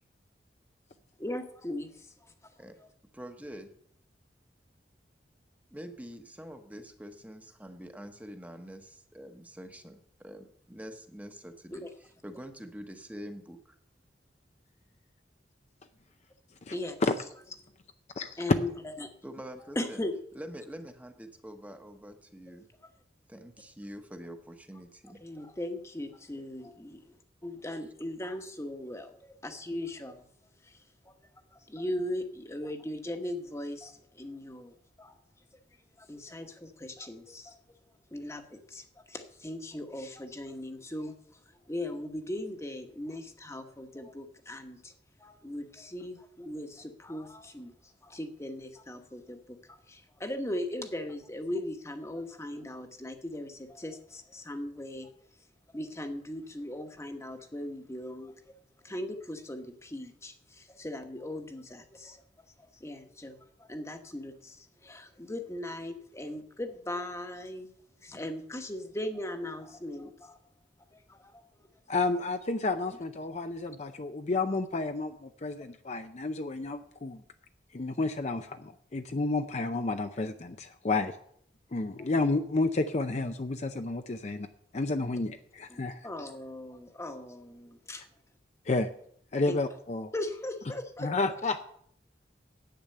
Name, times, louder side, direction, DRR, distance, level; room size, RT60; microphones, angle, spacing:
voice 1, 1.2-2.3 11.7-11.9 16.7-17.0 18.4-18.7 19.0-19.1 19.7-20.1 25.2-27.0 27.4-30.2 30.6-30.8 31.0-31.1 31.5-35.2 36.0-37.5 38.1-41.1 41.7-44.9 45.2-47.7 48.0-49.4 49.7-55.1 55.7-58.3 58.8-62.2 62.8-67.7 68.0-70.4 70.9-71.4 82.0-82.1 84.2-84.3 85.7-88.1 89.5-89.6 90.1-91.1, left 1 dB, 15° left, 6 dB, 1.1 m, -38 dB
voice 2, 3.1-3.7 5.7-13.8 19.2-20.0 20.3-22.7 23.3-25.2, equal, 10° right, 6 dB, 1.0 m, -45 dB
voice 3, 71.9-77.2 77.7-81.2 81.7-84.5 84.7-86.1 88.7-88.9 89.3-90.1 91.0-91.6, left 3 dB, 40° left, 8 dB, 0.5 m, -31 dB
10.5 x 8.8 x 6.7 m, 0.66 s
head